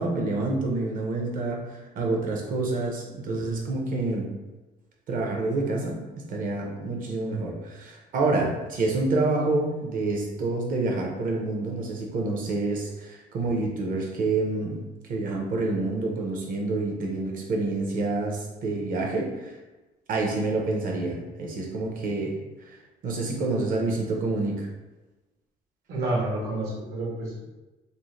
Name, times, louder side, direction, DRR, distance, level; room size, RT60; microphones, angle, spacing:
voice 1, 0.0-4.3 5.1-14.8 15.1-19.6 20.1-22.4 22.7-22.8 23.0-24.7, right 3 dB, 55° right, 0 dB, 0.7 m, -28 dB
voice 2, 25.9-27.5, right 2 dB, 75° right, -3 dB, 1.0 m, -29 dB
2.6 x 2.1 x 3.1 m, 1.1 s
cardioid pair, 110°, 17 cm